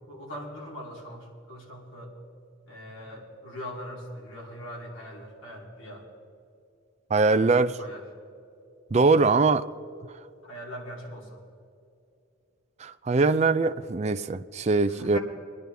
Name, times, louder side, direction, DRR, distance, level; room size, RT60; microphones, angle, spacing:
voice 1, 0.1-2.1 2.7-6.0 7.3-8.0 10.4-11.4 14.9-15.2, equal, 75° left, 3.1 m, -41 dB
voice 2, 7.1-7.8 8.9-9.6 12.8-15.2, right 3 dB, 35° right, 0.4 m, -22 dB
23.5 x 11.0 x 3.4 m
head